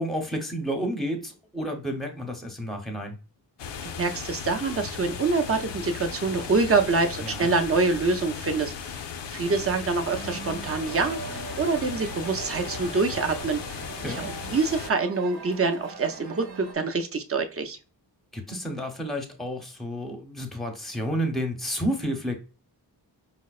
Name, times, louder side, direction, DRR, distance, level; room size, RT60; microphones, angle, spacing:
voice 1, 0.0-3.2 7.2-7.5 14.0-14.3 18.3-22.3, equal, ahead, 0.7 m, -31 dB
sound 1, 3.6-14.9, left 6 dB, 80° left, 0.5 m, -37 dB
voice 2, 3.8-8.7 9.3-13.6 14.1-14.3 14.5-17.8, right 4 dB, 35° right, 0.5 m, -25 dB
sound 2, 10.0-16.7, right 4 dB, 60° right, 0.8 m, -40 dB
4.9 x 2.0 x 2.3 m
wide cardioid pair, 95°, 42 cm